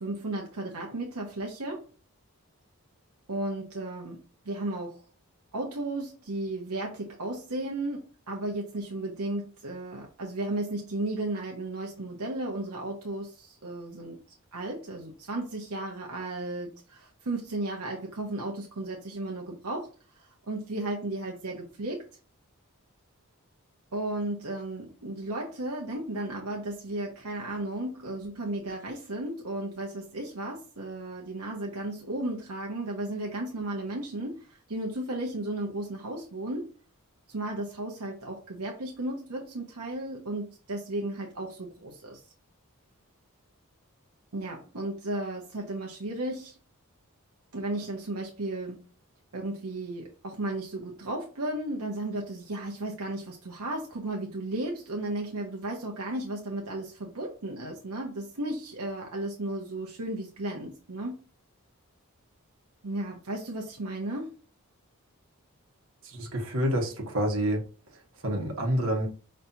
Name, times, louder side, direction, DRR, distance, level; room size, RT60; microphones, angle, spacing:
voice 1, 0.0-1.8 3.3-4.2 4.4-5.0 5.5-14.2 14.5-22.0 23.9-36.7 37.3-42.2 44.3-46.6 47.5-48.8 49.3-61.2 62.8-64.3, right 2 dB, 80° right, 0.9 m, -34 dB
voice 2, 66.0-67.6 68.2-69.1, equal, 65° right, 1.3 m, -28 dB
5.6 x 3.2 x 2.7 m
head